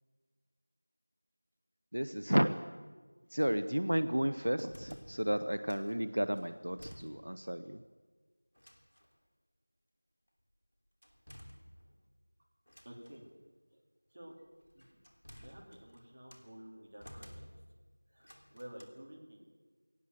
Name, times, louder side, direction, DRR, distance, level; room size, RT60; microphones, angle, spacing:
voice 1, 1.9-2.7 3.3-7.8, equal, 65° right, 11 dB, 0.8 m, -32 dB
sound 1, 4.4-6.0 6.4-7.5 7.8-7.9 8.5-9.2 11.0-12.1 12.7-13.3 14.4-16.5 17.0-17.8 18.2-18.8, equal, 70° left, 3.1 m, -55 dB
voice 2, 12.8-13.2 13.7-13.8 14.1-14.3 14.7-14.9 15.4-17.5 18.1-19.4, right 1 dB, 25° right, -1 dB, 2.8 m, -51 dB
20.0 x 18.0 x 7.7 m, 1.5 s
figure-of-eight pair, 180°, 0 cm